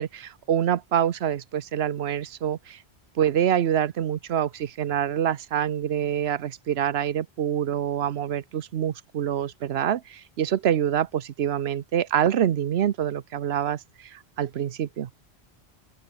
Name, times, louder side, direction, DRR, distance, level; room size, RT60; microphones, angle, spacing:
voice 1, 0.0-2.8 3.2-13.8 14.1-15.1, right 10 dB, 80° right, 1.0 m, -26 dB
open air
omnidirectional pair, 1.1 m